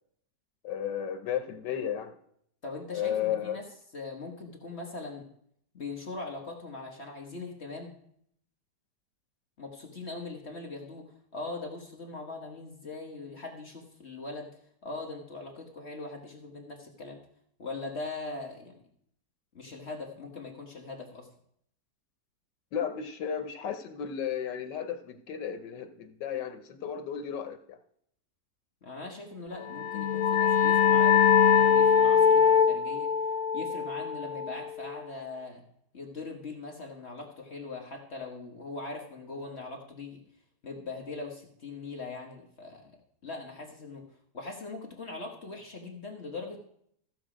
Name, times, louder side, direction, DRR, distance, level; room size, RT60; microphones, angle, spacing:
voice 1, 0.6-2.1 2.9-3.6 22.7-27.8, left 9 dB, 90° left, 9 dB, 1.5 m, -33 dB
voice 2, 2.6-3.6 3.9-5.3 5.7-8.0 9.6-14.5 14.8-17.2 17.6-18.8 19.5-21.3 28.8-33.1 33.5-35.6 35.9-40.2 40.6-42.9 43.2-44.0 44.3-46.6, left 3 dB, 40° left, 1 dB, 1.5 m, -41 dB
sound 1, 29.6-35.0, left 7 dB, 60° left, 1.1 m, -23 dB
15.0 x 7.0 x 5.0 m, 0.69 s
omnidirectional pair, 1.9 m